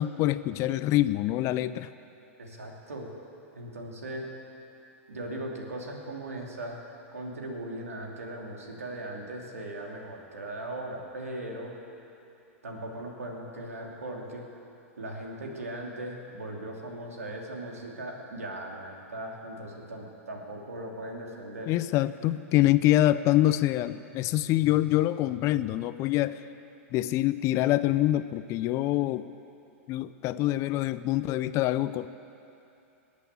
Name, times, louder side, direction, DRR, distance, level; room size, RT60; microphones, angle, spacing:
voice 1, 0.0-1.9 21.7-26.4 26.9-29.3 29.9-32.1, left 15 dB, 40° left, 14 dB, 0.6 m, -25 dB
voice 2, 2.4-3.1 3.5-4.3 5.1-6.8 7.1-11.8 12.6-14.5 15.0-21.7, right 1 dB, 90° right, 0 dB, 2.8 m, -38 dB
20.5 x 8.3 x 8.3 m, 2.8 s
hypercardioid pair, 110°, 8 cm